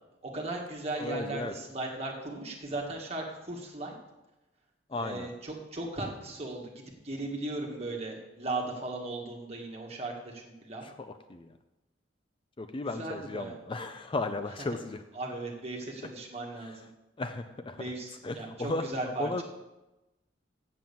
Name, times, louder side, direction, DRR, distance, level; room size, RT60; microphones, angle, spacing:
voice 1, 0.2-3.9 4.9-10.8 12.8-13.5 15.1-16.7 17.7-19.4, right 2 dB, 35° right, 0 dB, 1.8 m, -37 dB
voice 2, 1.0-1.5 4.9-5.3 10.8-11.5 12.6-15.0 16.6-16.7 17.2-17.8 18.2-18.8 19.2-19.4, left 2 dB, 30° left, 8 dB, 0.5 m, -35 dB
7.6 x 7.6 x 7.1 m, 1.0 s
head